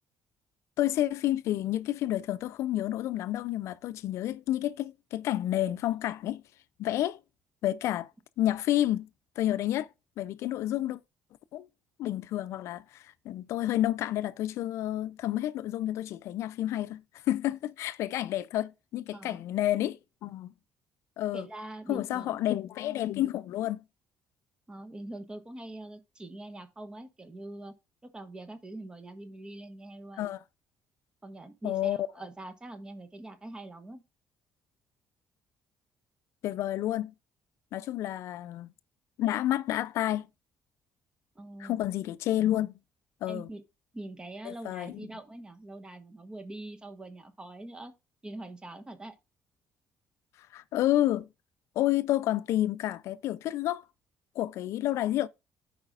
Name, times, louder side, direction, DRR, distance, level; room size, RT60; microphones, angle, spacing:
voice 1, 0.8-6.4 6.8-7.2 7.6-8.1 8.4-9.1 9.4-9.9 10.2-11.0 11.5-11.7 12.0-17.0 17.3-20.5 21.2-21.5 21.9-23.8 30.2-30.4 31.6-32.0 36.4-37.1 37.7-38.7 39.2-40.3 41.6-42.7 43.2-43.5 44.4-45.1 50.5-51.3 51.8-53.8 54.4-55.3, left 13 dB, 75° left, 0.4 m, -30 dB
voice 2, 19.1-19.4 21.3-22.4 24.7-27.7 28.0-30.3 31.2-34.0 41.3-41.8 43.3-43.6 43.9-47.9 48.2-49.2, right 1 dB, 20° right, 1.1 m, -43 dB
14.0 x 4.8 x 2.4 m
cardioid pair, 110°, 5 cm